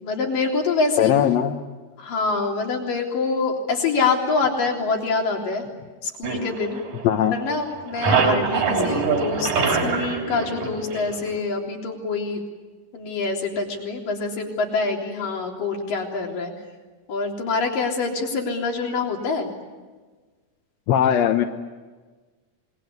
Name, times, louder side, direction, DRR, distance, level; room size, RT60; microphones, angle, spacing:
voice 1, 0.0-1.1 2.0-5.7 6.0-6.8 7.3-9.5 9.8-12.4 12.9-16.5 17.1-19.5, left 4 dB, 80° left, 1 dB, 5.2 m, -25 dB
voice 2, 1.0-1.6 7.0-7.4 20.9-21.4, left 10 dB, 65° left, 4 dB, 2.1 m, -19 dB
sound 1, 6.2-7.4 7.7-11.4, right 4 dB, 70° right, 4.8 m, -24 dB
27.0 x 22.0 x 9.6 m, 1.4 s
omnidirectional pair, 3.8 m